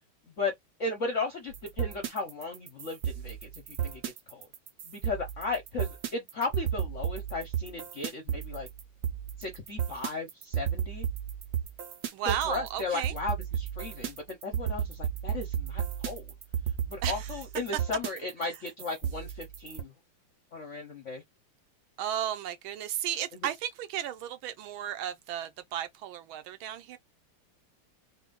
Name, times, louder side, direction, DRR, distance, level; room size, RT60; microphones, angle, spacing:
voice 1, 0.8-4.0 4.3-4.5 4.8-8.7 9.4-11.1 12.2-16.3 16.9-19.9 20.5-21.2, left 3 dB, 60° left, 0.7 m, -35 dB
sound 1, 1.5-19.8, right 9 dB, 60° right, 1.1 m, -34 dB
voice 2, 12.1-13.1 17.0-17.3 22.0-27.0, right 10 dB, 80° right, 1.4 m, -34 dB
4.3 x 2.1 x 3.8 m
omnidirectional pair, 2.4 m